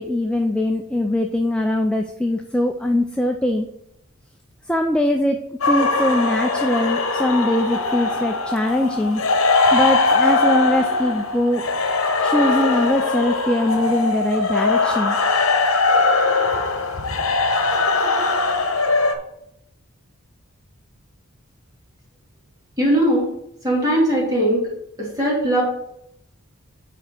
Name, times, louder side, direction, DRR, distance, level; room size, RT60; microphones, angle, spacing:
voice 1, 0.0-3.7 4.7-5.4 5.6-9.2 9.7-11.6 12.2-15.2, left 1 dB, 5° left, 3 dB, 0.4 m, -21 dB
sound 1, 5.6-19.2, left 3 dB, 80° left, 1.0 m, -20 dB
voice 2, 22.8-23.3 23.6-24.7 25.0-25.6, right 1 dB, 20° right, -4 dB, 2.5 m, -19 dB
5.8 x 4.5 x 6.4 m, 0.78 s
head